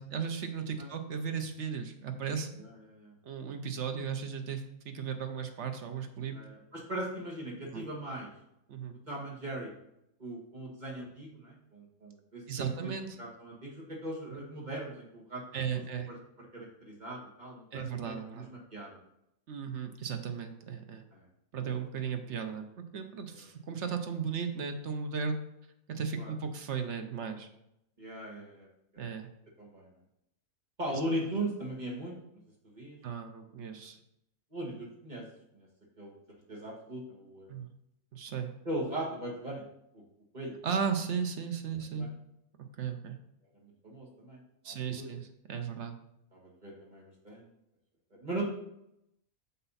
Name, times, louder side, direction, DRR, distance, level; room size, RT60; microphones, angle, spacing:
voice 1, 0.0-2.5 3.2-6.4 7.7-7.8 8.7-9.0 11.0-11.1 12.5-13.2 14.3-14.4 15.5-16.1 17.7-18.5 19.5-21.0 21.5-25.4 25.9-27.5 29.0-29.3 30.9-31.0 33.0-34.0 37.5-37.7 38.1-38.5 40.6-42.1 42.8-43.2 44.6-46.0, right 6 dB, 60° right, 6 dB, 0.9 m, -36 dB
voice 2, 2.6-3.1 6.3-8.3 9.1-9.7 10.2-12.9 13.2-15.4 15.7-15.8 16.5-18.4 18.7-18.9 21.1-21.2 23.3-23.4 26.2-26.3 28.0-28.7 28.9-29.0 29.6-29.9 30.8-32.2 32.7-33.0 34.5-35.2 36.0-36.1 36.5-37.5 38.7-39.6 39.9-40.0 40.3-40.5 42.0-42.1 43.6-44.4 44.7-45.1 46.3-47.4 48.1-48.4, right 1 dB, 30° right, -3 dB, 1.8 m, -39 dB
6.7 x 5.6 x 4.0 m, 0.80 s
omnidirectional pair, 1.5 m